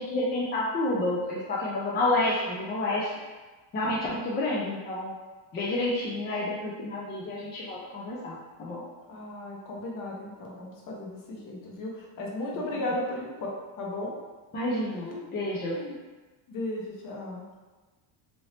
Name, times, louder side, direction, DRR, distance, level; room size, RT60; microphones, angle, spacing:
voice 1, 0.0-3.1 3.7-5.1 5.5-8.8 14.5-15.8, left 2 dB, 25° left, -5 dB, 0.3 m, -29 dB
voice 2, 9.1-13.5 13.8-14.1 15.1-15.2 15.7-16.0 16.5-17.5, left 1 dB, 45° left, -2 dB, 0.8 m, -35 dB
2.8 x 2.7 x 3.1 m, 1.2 s
cardioid pair, 135°, 47 cm